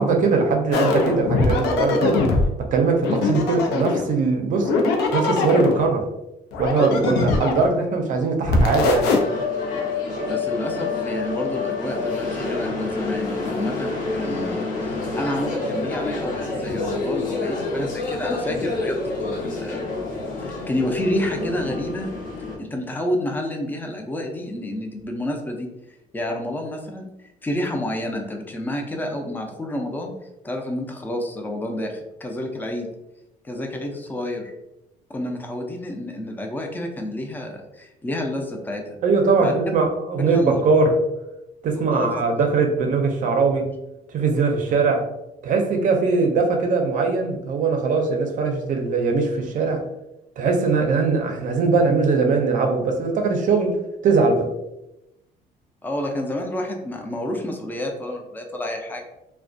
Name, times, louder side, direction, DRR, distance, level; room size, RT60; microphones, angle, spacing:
voice 1, 0.0-2.2 2.6-4.8 5.1-6.1 6.6-9.1 39.0-41.0 41.6-43.8 44.1-45.1 45.4-49.8 50.4-53.8 54.0-54.5, right 4 dB, 50° right, 3 dB, 0.5 m, -21 dB
sound 1, 0.7-2.5 3.0-4.1 4.6-5.8 6.5-7.7 8.4-9.2, left 3 dB, 85° left, 0.5 m, -21 dB
sound 2, 8.7-22.6, left 3 dB, 50° left, 0.7 m, -28 dB
voice 2, 10.3-19.9 20.4-22.1 22.6-25.7 26.1-27.1 27.4-30.1 30.4-32.9 33.4-34.5 35.1-38.8 39.4-39.5 40.3-40.6 41.9-42.3 55.8-59.0, left 1 dB, 10° left, 2 dB, 0.4 m, -29 dB
2.3 x 2.1 x 2.5 m, 0.92 s
cardioid pair, 110°, 17 cm